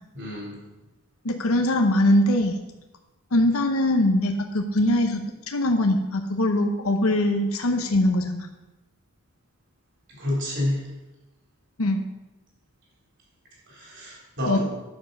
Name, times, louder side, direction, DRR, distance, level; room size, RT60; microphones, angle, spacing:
voice 1, 0.1-0.6 10.2-10.8 13.7-14.6, left 1 dB, 55° right, -4 dB, 3.9 m, -28 dB
voice 2, 1.2-2.6 3.3-8.5 11.8-12.0 14.5-14.6, left 1 dB, 75° left, 4 dB, 0.9 m, -22 dB
10.5 x 7.0 x 5.4 m, 1.1 s
head